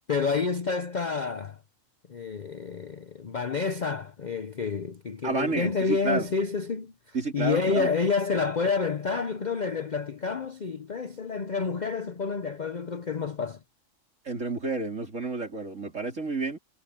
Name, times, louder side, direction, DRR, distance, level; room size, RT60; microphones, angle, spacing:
voice 1, 0.1-1.6 2.1-13.6, left 5 dB, 40° left, 0.7 m, -29 dB
voice 2, 5.2-6.3 7.1-7.9 14.2-16.6, right 4 dB, 65° right, 4.4 m, -30 dB
omnidirectional pair, 1.4 m